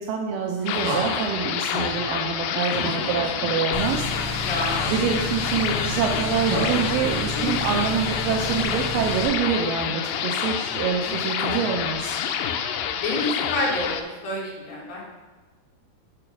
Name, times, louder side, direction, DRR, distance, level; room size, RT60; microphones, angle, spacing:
voice 1, 0.0-4.1 4.9-12.2, right 6 dB, 80° right, 1 dB, 1.9 m, -26 dB
sound 1, 0.6-1.4 2.6-3.5 4.6-5.3 6.4-7.5 8.6-8.7, right 2 dB, 65° right, 2.7 m, -32 dB
sound 2, 0.7-14.0, left 8 dB, 85° left, 2.0 m, -28 dB
voice 2, 1.0-1.4 4.4-4.8 7.4-7.5 11.1-11.2 13.0-15.1, left 1 dB, 65° left, -4 dB, 3.3 m, -29 dB
sound 3, 3.7-9.3, left 1 dB, 50° right, 1.4 m, -31 dB
7.2 x 4.6 x 4.9 m, 1.3 s
omnidirectional pair, 4.5 m